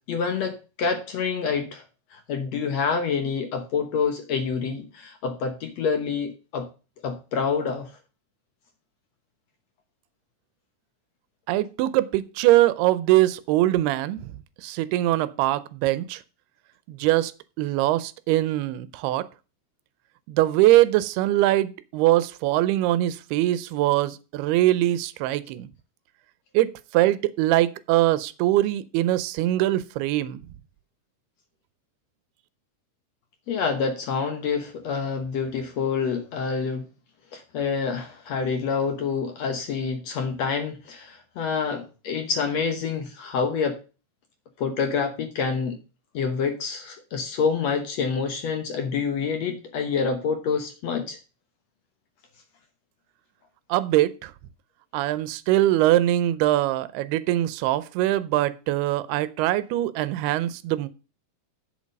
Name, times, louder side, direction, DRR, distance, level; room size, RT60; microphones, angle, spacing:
voice 1, 0.1-1.8 2.1-6.7 7.0-7.9 33.5-36.9 37.3-43.8 44.6-45.8 46.1-51.2, left 5 dB, 65° left, 1.7 m, -27 dB
voice 2, 11.5-14.3 14.6-16.2 16.9-17.3 17.6-19.3 20.3-25.7 26.5-30.4 53.7-54.3 54.9-60.9, right 15 dB, 90° right, 2.7 m, -22 dB
8.0 x 7.3 x 5.2 m
omnidirectional pair, 4.5 m